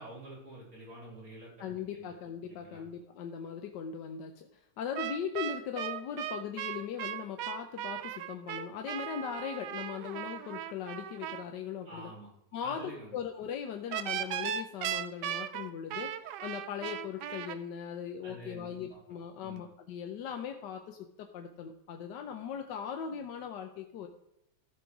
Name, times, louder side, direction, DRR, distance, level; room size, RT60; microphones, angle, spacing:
voice 1, 0.0-1.5 1.9-2.1 2.5-2.8 11.9-12.3 12.6-13.1 18.2-19.0 19.4-19.6, right 1 dB, 55° right, -5 dB, 4.3 m, -47 dB
voice 2, 1.6-12.1 12.5-16.1 16.4-24.1, left 8 dB, 90° left, 4 dB, 1.4 m, -39 dB
sound 1, 4.9-11.4 13.9-17.6, right 11 dB, 80° right, 1.2 m, -37 dB
14.0 x 5.5 x 4.7 m, 0.82 s
omnidirectional pair, 1.8 m